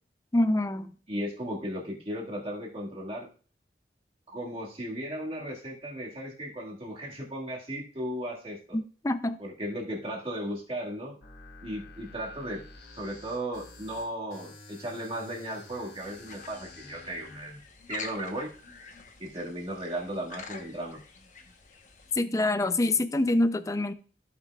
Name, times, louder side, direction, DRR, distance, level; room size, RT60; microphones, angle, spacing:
voice 1, 0.3-0.9 8.7-9.4 22.1-23.9, left 2 dB, 20° left, 12 dB, 0.4 m, -26 dB
voice 2, 1.1-3.3 4.3-8.8 9.4-11.2 11.6-12.7 13.0-17.6 17.9-18.5 19.2-21.0, right 1 dB, 35° right, -3 dB, 1.9 m, -36 dB
sound 1, 11.2-17.4, left 2 dB, 75° left, 1.4 m, -50 dB
sound 2, 16.0-22.1, left 4 dB, 45° left, 1.0 m, -47 dB
15.0 x 5.9 x 2.4 m, 0.38 s
head